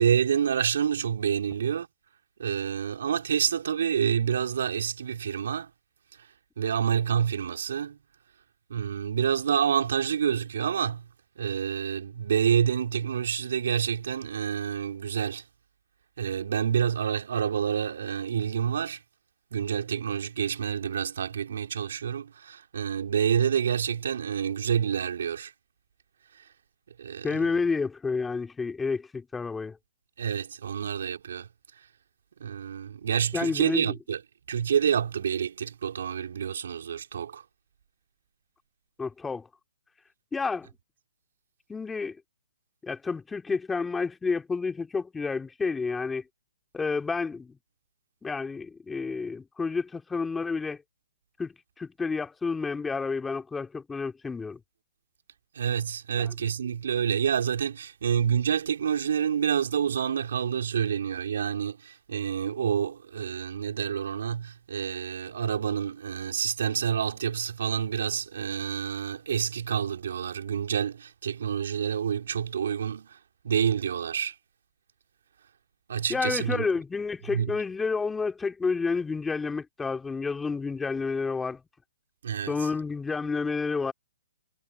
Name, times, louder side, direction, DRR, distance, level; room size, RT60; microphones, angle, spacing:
voice 1, 0.0-1.9 2.4-5.7 6.2-6.3 6.6-8.0 8.7-11.1 11.4-15.4 16.2-19.0 19.5-25.5 26.4-26.5 27.0-27.6 30.2-31.5 32.4-34.2 34.5-37.4 55.5-73.2 73.4-74.4 75.9-76.7 77.2-77.6 82.2-82.7, right 8 dB, 70° right, 3.4 m, -28 dB
voice 2, 27.2-29.8 33.3-33.9 39.0-39.5 40.3-40.7 41.7-42.2 42.8-46.2 46.7-47.6 48.2-50.8 51.4-54.6 56.1-56.3 76.1-81.6 82.5-83.9, left 4 dB, 10° left, 2.8 m, -30 dB
hypercardioid pair, 145°, 0 cm